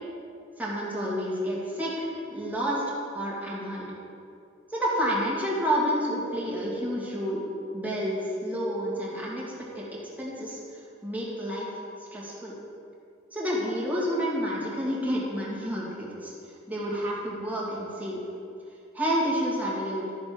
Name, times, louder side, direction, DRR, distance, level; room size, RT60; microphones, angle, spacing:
voice 1, 0.6-2.8 3.1-3.9 4.7-7.4 7.7-9.4 9.8-9.9 10.2-10.6 11.0-11.7 12.1-12.5 13.3-16.3 16.7-18.2 18.9-20.1, equal, 10° right, -6 dB, 2.5 m, -29 dB
13.0 x 7.0 x 5.4 m, 2.5 s
head